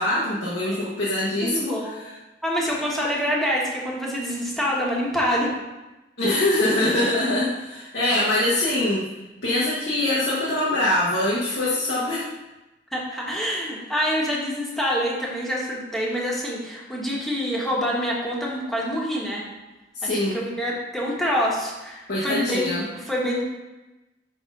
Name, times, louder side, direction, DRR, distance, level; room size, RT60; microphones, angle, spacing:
voice 1, 0.0-2.0 6.2-9.1 9.4-12.2 19.9-20.4 22.1-22.8, left 1 dB, 75° left, -8 dB, 1.4 m, -23 dB
voice 2, 1.4-1.9 2.4-5.5 12.9-19.4 20.0-23.4, equal, ahead, -5 dB, 1.4 m, -26 dB
6.2 x 3.9 x 5.3 m, 1.0 s
head